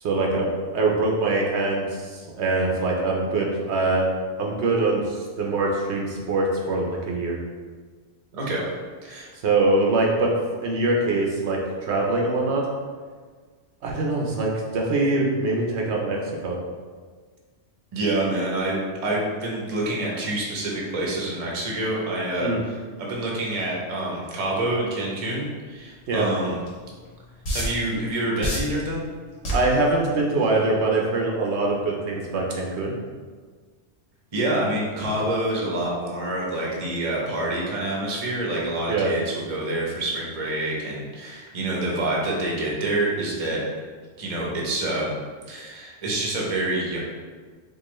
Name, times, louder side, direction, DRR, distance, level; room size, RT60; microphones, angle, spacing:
voice 1, 0.0-4.0 4.4-7.4 9.4-10.3 10.6-12.7 13.8-16.5 22.4-22.6 26.1-26.3 29.5-32.9 38.9-39.1, right 2 dB, 75° right, -1 dB, 0.9 m, -23 dB
voice 2, 8.3-8.6 9.0-9.3 17.9-26.6 27.5-29.0 34.3-43.6 44.2-45.2 45.5-47.0, right 1 dB, 35° right, -3 dB, 0.7 m, -27 dB
sound 1, 26.7-26.8 27.4-27.9 28.4-28.8 29.4-29.8 30.4-30.6, equal, 85° left, 1.3 m, -26 dB
4.6 x 2.4 x 3.0 m, 1.5 s
omnidirectional pair, 1.2 m